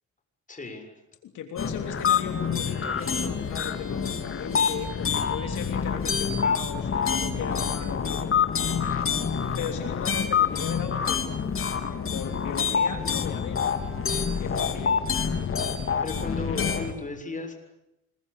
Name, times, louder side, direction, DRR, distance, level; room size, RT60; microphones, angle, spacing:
voice 1, 0.5-1.0 16.0-17.5, left 3 dB, 25° left, 5 dB, 7.1 m, -35 dB
voice 2, 1.2-8.4 9.6-11.2 11.8-13.6 14.4-15.1, left 8 dB, 80° left, 6 dB, 3.4 m, -37 dB
sound 1, 1.6-16.9, left 6 dB, 45° left, 3.4 m, -27 dB
26.5 x 22.5 x 8.7 m, 0.87 s
cardioid pair, 90°, 30 cm